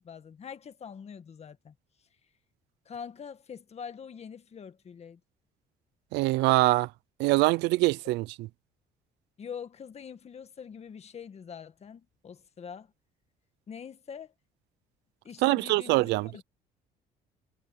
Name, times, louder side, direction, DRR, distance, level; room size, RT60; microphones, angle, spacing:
voice 1, 0.0-1.8 2.9-5.2 9.4-12.9 13.7-14.3 15.2-16.4, left 7 dB, 40° left, 1.7 m, -44 dB
voice 2, 6.1-6.9 7.2-8.5 15.4-16.4, right 20 dB, 90° right, 0.5 m, -24 dB
cardioid pair, 110°, 17 cm